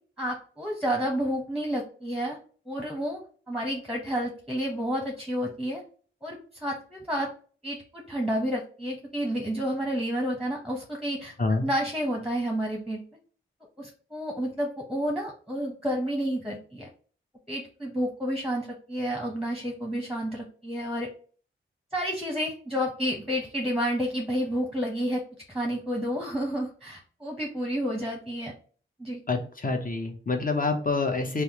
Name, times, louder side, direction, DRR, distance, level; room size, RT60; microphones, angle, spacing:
voice 1, 0.2-2.4 2.7-3.2 3.5-5.8 6.2-7.3 7.6-11.3 11.6-13.0 13.8-16.9 17.5-21.1 21.9-25.2 25.5-28.5 29.0-29.2, equal, ahead, 0 dB, 0.8 m, -30 dB
voice 2, 29.3-31.4, left 3 dB, 40° left, 4 dB, 0.7 m, -27 dB
3.3 x 2.0 x 2.8 m, 0.42 s
wide cardioid pair, 55°, 21 cm